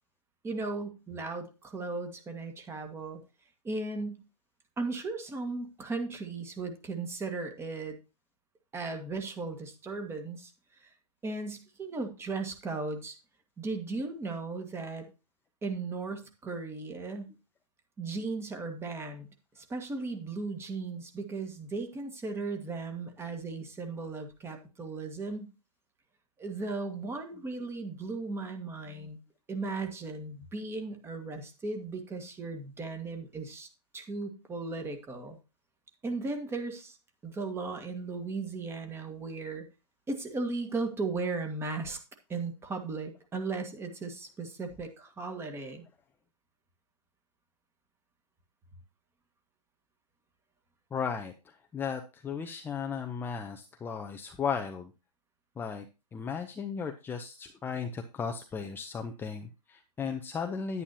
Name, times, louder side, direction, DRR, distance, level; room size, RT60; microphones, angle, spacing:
voice 1, 0.4-3.2 3.6-4.2 4.8-8.0 8.7-10.5 10.8-10.9 11.2-13.2 13.6-15.1 15.6-17.4 18.0-19.3 19.6-25.5 26.4-29.2 29.5-33.7 33.9-35.4 36.0-37.0 37.2-39.7 40.1-42.0 42.3-45.9, right 3 dB, 10° right, 5 dB, 1.9 m, -36 dB
voice 2, 50.9-54.9 55.6-55.8 56.1-60.8, left 6 dB, 10° left, 5 dB, 0.7 m, -35 dB
11.0 x 9.9 x 2.9 m, 0.30 s
hypercardioid pair, 135°, 20 cm